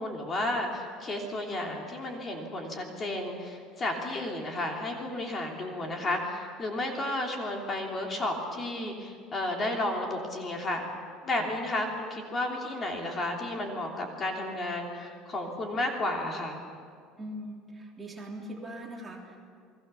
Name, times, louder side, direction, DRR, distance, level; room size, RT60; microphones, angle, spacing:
voice 1, 0.0-10.9 11.2-16.6, left 1 dB, 25° left, 1 dB, 3.1 m, -32 dB
voice 2, 17.2-19.4, equal, 15° right, -1 dB, 3.4 m, -41 dB
30.0 x 21.5 x 7.0 m, 2.2 s
cardioid pair, 155°, 0 cm